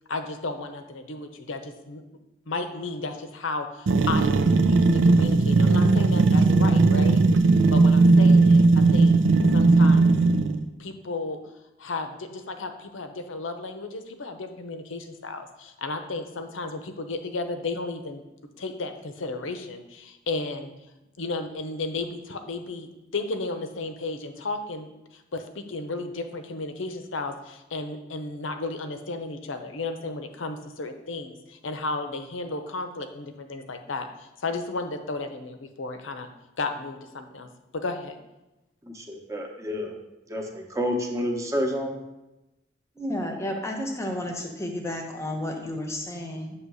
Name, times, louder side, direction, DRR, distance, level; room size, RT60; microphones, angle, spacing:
voice 1, 0.1-2.0 2.5-7.2 7.7-9.1 9.5-10.5 10.8-11.4 11.8-18.2 18.6-20.7 21.2-24.9 25.1-36.3 36.6-37.5 37.7-38.2, left 3 dB, 90° left, 7 dB, 0.7 m, -33 dB
sound 1, 3.9-10.6, right 3 dB, 75° right, 0.5 m, -18 dB
voice 2, 38.9-39.9 40.3-42.0, equal, 15° right, 2 dB, 0.8 m, -29 dB
voice 3, 43.0-46.5, left 1 dB, 15° left, 2 dB, 0.8 m, -32 dB
8.0 x 3.0 x 6.2 m, 0.99 s
head